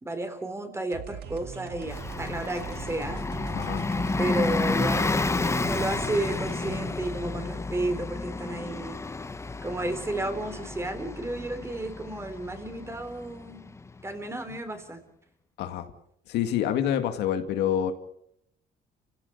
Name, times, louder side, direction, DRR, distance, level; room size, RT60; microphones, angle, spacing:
voice 1, 0.0-3.3 4.2-9.0 9.6-13.7 14.0-15.0, right 2 dB, 15° right, 8 dB, 3.6 m, -32 dB
sound 1, 0.9-6.9, right 8 dB, 75° right, 2.0 m, -41 dB
Bus, 1.8-14.1, left 3 dB, 15° left, 1.0 m, -31 dB
voice 2, 3.6-4.2 15.6-15.9 16.3-17.9, left 10 dB, 80° left, 7 dB, 2.2 m, -27 dB
29.5 x 16.5 x 6.7 m, 0.74 s
cardioid pair, 110°, 17 cm